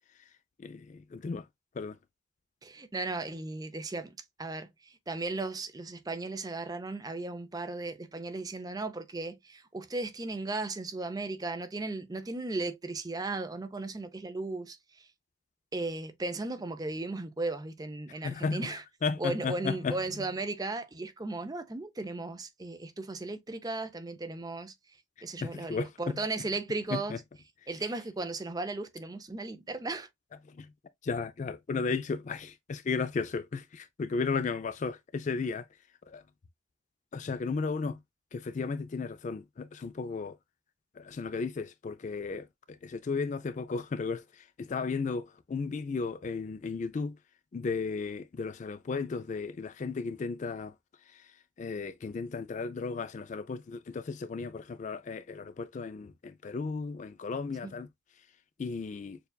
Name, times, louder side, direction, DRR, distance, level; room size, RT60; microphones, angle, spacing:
voice 1, 0.6-1.5 1.7-2.0 18.1-20.0 25.4-26.2 26.9-27.2 30.4-30.7 31.0-35.7 36.1-36.2 37.1-38.0 38.3-40.4 40.9-47.2 47.5-50.8 51.0-57.9 58.2-58.3 58.6-59.2, left 4 dB, 35° left, 0.3 m, -35 dB
voice 2, 2.6-4.1 4.4-15.1 15.7-18.8 19.2-24.7 25.2-27.2 27.7-30.1 57.6-57.7, right 2 dB, 20° right, 0.5 m, -36 dB
6.8 x 2.3 x 2.2 m
head